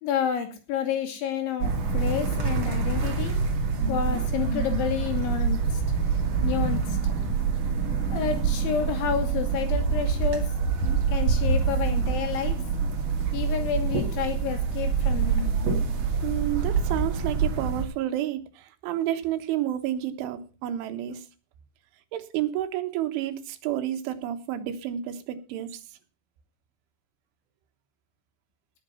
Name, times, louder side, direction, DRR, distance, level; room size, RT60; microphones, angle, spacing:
voice 1, 0.0-3.4 3.9-5.8 6.4-7.0 8.1-10.5 11.1-12.6 13.3-15.5, left 8 dB, 80° left, 6 dB, 4.8 m, -30 dB
sound 1, 1.6-17.8, right 5 dB, 50° right, 3.4 m, -26 dB
voice 2, 16.2-21.3 22.1-25.8, right 12 dB, 85° right, 8 dB, 3.7 m, -30 dB
18.5 x 7.2 x 5.7 m, 0.34 s
omnidirectional pair, 5.4 m